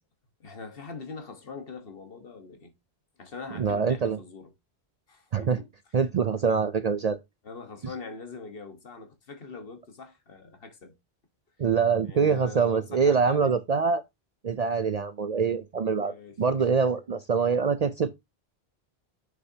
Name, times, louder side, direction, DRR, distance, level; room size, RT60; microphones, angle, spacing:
voice 1, 0.4-2.7 3.2-4.5 5.1-5.7 7.4-10.9 12.0-13.6 16.0-16.4 16.8-16.9, left 4 dB, 60° left, 1.5 m, -42 dB
voice 2, 3.6-4.2 5.3-5.6 5.9-7.2 11.6-14.0 14.4-16.1 16.4-18.2, right 5 dB, 50° right, 0.5 m, -24 dB
7.2 x 6.6 x 2.8 m
omnidirectional pair, 1.1 m